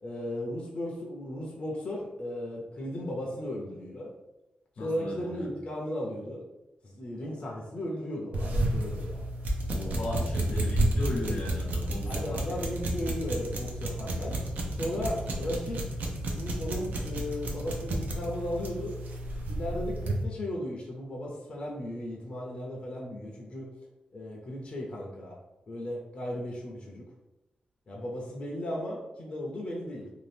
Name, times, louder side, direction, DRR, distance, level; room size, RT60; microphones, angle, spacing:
voice 1, 0.0-4.1 4.8-6.4 6.8-9.2 12.0-14.4 14.7-15.9 16.3-19.0 19.5-23.7 24.1-25.4 25.7-27.1 27.9-30.1, left 1 dB, 40° left, -2 dB, 0.5 m, -36 dB
voice 2, 4.8-5.5 9.7-12.6, left 1 dB, 85° left, -2 dB, 0.9 m, -36 dB
sound 1, 8.3-20.2, right 1 dB, 80° right, 0.5 m, -31 dB
2.7 x 2.4 x 3.3 m, 0.97 s
wide cardioid pair, 165°, 3 cm